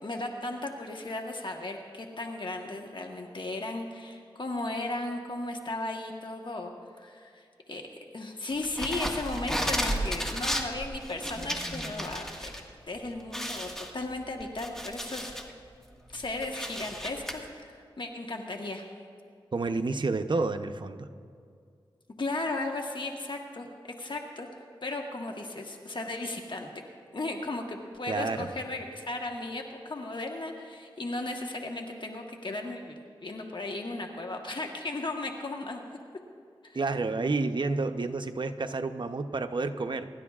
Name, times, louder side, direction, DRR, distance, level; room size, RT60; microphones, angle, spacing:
voice 1, 0.0-6.7 7.0-7.8 8.1-12.5 12.9-15.3 16.1-18.9 22.2-23.7 24.0-24.5 24.8-26.7 27.1-35.8 36.6-36.8, left 2 dB, 55° left, 2 dB, 1.3 m, -36 dB
sound 1, 8.6-12.6 12.9-13.0 13.3-15.5 16.0-17.3, equal, 5° left, 1.6 m, -33 dB
voice 2, 19.5-21.1 28.1-28.5 36.7-40.1, right 3 dB, 55° right, 7 dB, 0.7 m, -30 dB
25.0 x 12.0 x 2.4 m, 2.3 s
cardioid pair, 50°, 10 cm